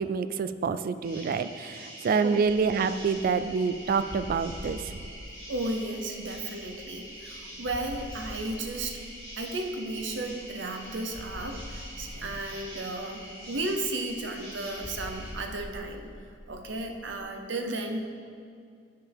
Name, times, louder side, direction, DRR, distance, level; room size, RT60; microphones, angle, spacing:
voice 1, 0.0-5.0, right 5 dB, 50° right, 12 dB, 0.3 m, -27 dB
sound 1, 1.0-15.3, equal, 30° right, 2.3 m, -45 dB
sound 2, 2.4-17.2, left 1 dB, 25° left, 0.5 m, -46 dB
voice 2, 5.5-9.0 9.4-16.1 16.5-18.0, right 2 dB, 70° right, 4 dB, 0.8 m, -34 dB
9.9 x 6.9 x 3.5 m, 2.3 s
head